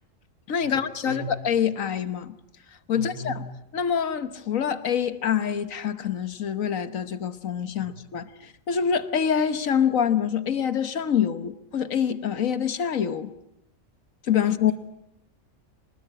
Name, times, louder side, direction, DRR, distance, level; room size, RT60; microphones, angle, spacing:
voice 1, 0.5-2.3 2.9-3.4 3.7-13.3 14.3-14.7, left 8 dB, 70° left, 1.6 m, -26 dB
voice 2, 2.9-3.4 7.7-8.0, right 1 dB, 85° right, 4.2 m, -36 dB
24.5 x 21.0 x 8.8 m
omnidirectional pair, 1.4 m